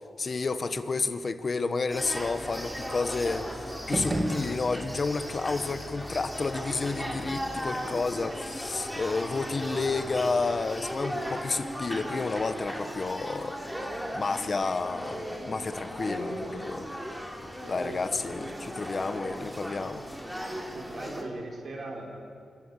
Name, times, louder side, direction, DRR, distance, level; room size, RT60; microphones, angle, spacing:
voice 1, 0.2-13.6 14.1-16.9 17.7-20.0, left 4 dB, 45° left, 11 dB, 1.1 m, -31 dB
sound 1, 1.9-21.2, equal, ahead, 3.0 m, -37 dB
sound 2, 3.7-5.2, right 1 dB, 25° right, 2.0 m, -32 dB
voice 2, 5.5-5.9 17.6-18.1 19.7-19.9 20.3-22.2, right 2 dB, 60° right, 1 dB, 3.6 m, -41 dB
25.0 x 14.5 x 7.5 m, 2.5 s
cardioid pair, 85°, 0 cm